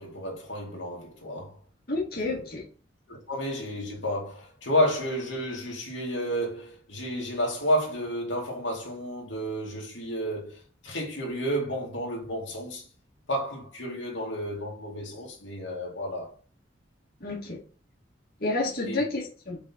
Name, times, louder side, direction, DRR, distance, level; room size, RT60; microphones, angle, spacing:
voice 1, 0.0-1.5 2.3-2.5 3.1-10.6 10.8-12.8 13.3-16.3 18.9-19.0, equal, 80° left, 2.5 m, -31 dB
voice 2, 1.9-2.6 17.2-17.6 18.4-19.6, left 2 dB, 50° left, 2.1 m, -30 dB
5.5 x 5.3 x 4.0 m
head